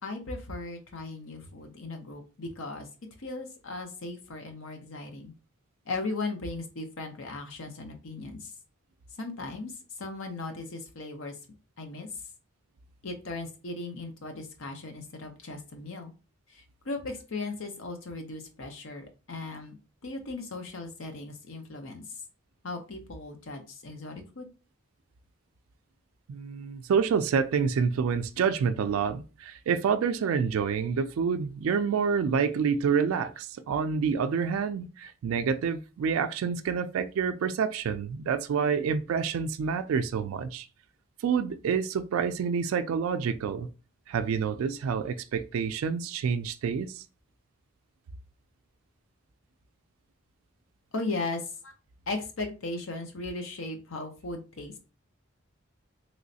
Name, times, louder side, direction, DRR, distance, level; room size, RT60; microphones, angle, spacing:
voice 1, 0.0-2.9 3.2-5.3 5.9-8.5 9.2-11.4 11.8-12.1 13.0-16.1 16.5-19.8 20.0-22.0 22.6-24.5 50.9-51.7 52.1-54.8, left 3 dB, 75° left, 0.7 m, -37 dB
voice 2, 26.3-40.7 41.2-43.7 44.1-47.0, right 6 dB, 80° right, 0.3 m, -28 dB
3.1 x 3.0 x 2.7 m
head